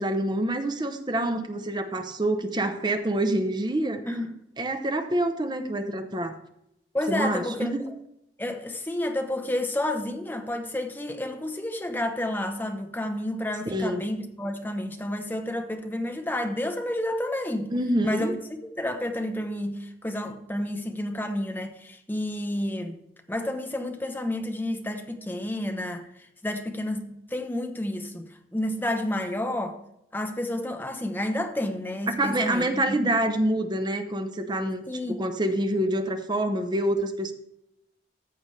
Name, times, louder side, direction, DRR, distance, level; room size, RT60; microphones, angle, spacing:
voice 1, 0.0-4.0 4.6-6.4 7.1-7.8 13.7-14.1 17.7-18.3 32.2-37.3, right 1 dB, 25° right, 0.8 m, -26 dB
voice 2, 4.1-4.4 6.9-7.7 8.4-17.7 18.0-18.3 18.8-23.0 23.3-26.1 26.4-28.3 28.5-29.8 30.1-33.1 34.9-35.2, left 1 dB, 10° left, 0.9 m, -30 dB
14.0 x 7.1 x 3.3 m
head